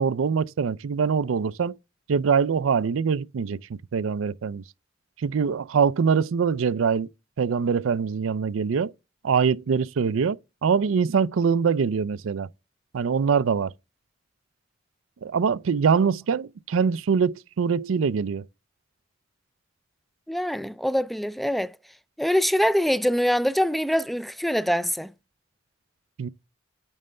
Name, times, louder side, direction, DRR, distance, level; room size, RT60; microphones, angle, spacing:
voice 1, 0.0-1.7 2.1-3.6 3.9-4.6 5.2-7.1 7.4-8.9 9.2-12.5 12.9-13.7 15.2-18.4 26.2-26.3, right 6 dB, 85° right, 0.4 m, -23 dB
voice 2, 20.3-21.7 22.2-25.1, equal, ahead, 0.3 m, -24 dB
8.9 x 3.3 x 5.4 m
head